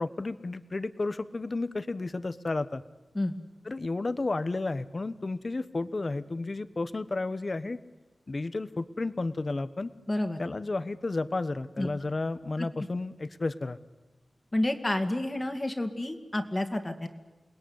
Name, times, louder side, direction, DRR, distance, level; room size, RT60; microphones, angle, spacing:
voice 1, 0.0-2.8 3.6-7.8 8.3-9.9 10.4-13.8, left 3 dB, 40° left, 13 dB, 1.2 m, -32 dB
voice 2, 10.1-10.4 11.8-11.9 12.6-12.7 14.5-17.1, left 1 dB, 25° left, 6 dB, 2.3 m, -29 dB
29.0 x 20.0 x 9.7 m, 1.2 s
wide cardioid pair, 105°, 0 cm